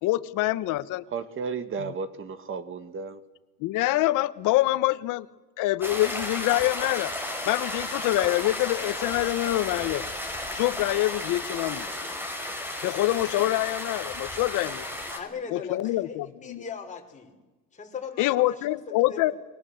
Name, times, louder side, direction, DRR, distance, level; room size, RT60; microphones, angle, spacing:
voice 1, 0.0-1.0 1.8-1.9 3.6-5.3 5.6-7.1 7.4-10.0 10.5-11.8 12.8-14.9 15.5-16.6 18.2-19.3, left 17 dB, 70° left, 15 dB, 1.3 m, -25 dB
voice 2, 1.1-3.2, right 5 dB, 40° right, 12 dB, 2.1 m, -33 dB
sound 1, 5.8-15.2, left 1 dB, 5° right, 5.8 m, -34 dB
voice 3, 15.1-16.2 16.4-17.3 17.7-19.3, left 5 dB, 20° left, 1 dB, 5.5 m, -39 dB
29.0 x 23.0 x 8.1 m, 1.1 s
cardioid pair, 120°, 33 cm